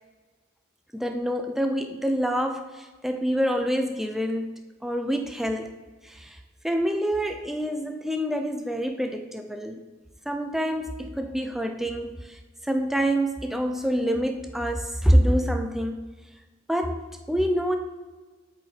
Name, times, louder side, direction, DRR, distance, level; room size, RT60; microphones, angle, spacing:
voice 1, 0.9-4.5 4.8-5.7 6.0-6.4 6.6-9.8 10.3-16.0 16.7-17.8, equal, ahead, 6 dB, 0.4 m, -26 dB
7.7 x 4.9 x 4.4 m, 1.3 s
head